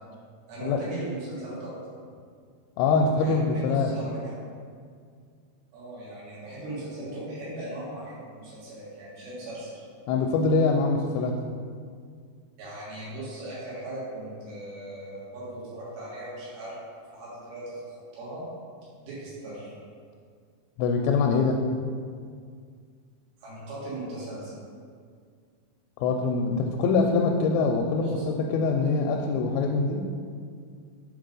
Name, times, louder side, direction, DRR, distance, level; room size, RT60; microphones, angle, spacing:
voice 1, 0.5-1.7 3.2-4.3 5.7-9.8 12.6-16.8 17.1-17.8 18.1-18.4 19.0-19.7 23.4-24.5 28.0-28.2, right 1 dB, 85° right, -8 dB, 3.6 m, -38 dB
voice 2, 2.8-3.9 10.1-11.4 20.8-21.6 26.0-30.1, left 4 dB, 85° left, 3 dB, 2.4 m, -24 dB
6.8 x 4.0 x 5.2 m, 2.1 s
omnidirectional pair, 4.3 m